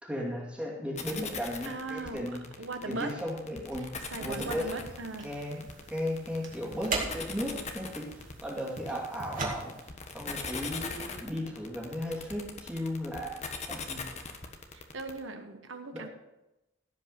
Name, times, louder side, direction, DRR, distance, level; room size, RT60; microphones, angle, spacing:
voice 1, 0.0-2.4 2.8-3.9 4.2-4.7 5.2-9.7 10.1-14.0 15.9-16.0, equal, 5° right, -3 dB, 2.4 m, -36 dB
sound 1, 1.0-15.2, left 5 dB, 35° left, 1.2 m, -40 dB
voice 2, 1.6-2.3 2.6-3.2 4.0-5.3 14.7-16.1, right 3 dB, 75° right, 7 dB, 1.2 m, -38 dB
sound 2, 4.2-9.9, right 3 dB, 45° right, 2.3 m, -40 dB
15.5 x 5.3 x 6.7 m, 0.95 s
head